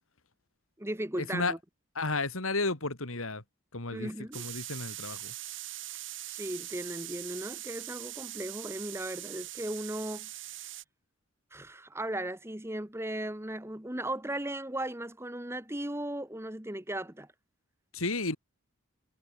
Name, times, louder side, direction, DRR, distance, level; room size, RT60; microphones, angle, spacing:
voice 1, 0.8-1.6 3.9-4.5 6.3-10.3 11.5-17.3, right 1 dB, 10° right, 1.3 m, -37 dB
voice 2, 1.9-3.4 3.7-4.1 4.3-5.3 17.9-18.4, left 3 dB, 80° left, 3.2 m, -32 dB
sound 1, 4.3-10.8, right 15 dB, 60° right, 4.1 m, -42 dB
head